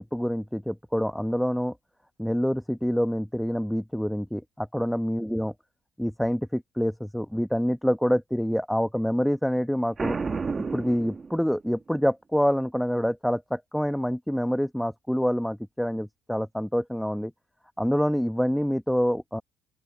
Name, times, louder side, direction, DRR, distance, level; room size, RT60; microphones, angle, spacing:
voice 1, 0.0-1.7 2.2-5.5 6.0-10.2 10.6-17.3 17.8-19.4, equal, ahead, 1.5 m, -26 dB
Boom, 10.0-11.8, right 4 dB, 35° right, 1.3 m, -31 dB
open air
hypercardioid pair, 65°, 0 cm